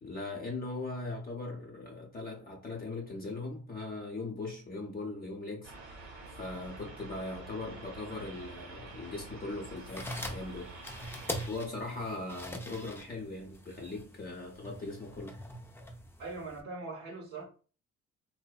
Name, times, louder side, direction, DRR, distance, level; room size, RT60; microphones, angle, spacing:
voice 1, 0.0-5.7 6.4-10.8 11.5-15.4, left 2 dB, 30° left, 0.7 m, -39 dB
sound 1, 5.6-11.5, right 3 dB, 45° right, 0.9 m, -48 dB
sound 2, 9.8-16.6, left 1 dB, 10° left, 0.4 m, -43 dB
voice 2, 16.2-17.4, right 3 dB, 75° right, 0.7 m, -41 dB
2.6 x 2.1 x 2.3 m
cardioid pair, 90°, 30 cm